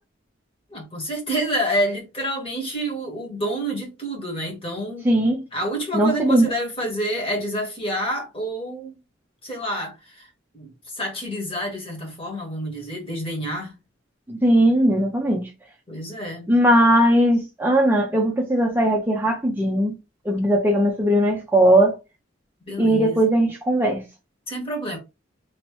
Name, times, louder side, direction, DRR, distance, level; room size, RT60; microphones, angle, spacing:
voice 1, 0.7-5.1 5.5-9.0 9.4-13.8 15.9-16.5 22.6-23.2 24.5-25.0, right 1 dB, 30° left, 1.3 m, -28 dB
voice 2, 5.0-5.4 5.9-6.5 14.3-15.5 16.5-20.0 20.3-22.0 22.8-24.0, right 1 dB, 10° right, 0.5 m, -19 dB
3.0 x 2.9 x 3.0 m
head